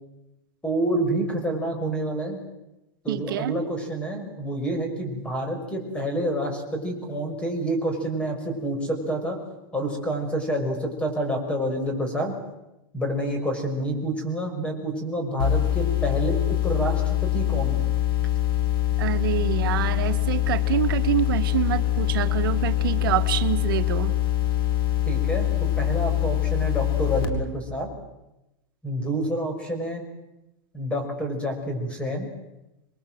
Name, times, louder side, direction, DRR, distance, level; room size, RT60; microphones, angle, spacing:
voice 1, 0.6-2.4 3.0-9.4 9.7-12.3 12.9-17.0 17.3-17.7 25.1-27.9 28.8-30.0 30.7-32.3, right 1 dB, 10° left, 4 dB, 6.1 m, -28 dB
voice 2, 3.1-3.5 19.0-24.1, right 12 dB, 70° right, 8 dB, 1.4 m, -26 dB
sound 1, 15.4-27.3, left 12 dB, 80° left, 4.4 m, -24 dB
27.5 x 22.5 x 7.8 m, 0.94 s
supercardioid pair, 155°, 12 cm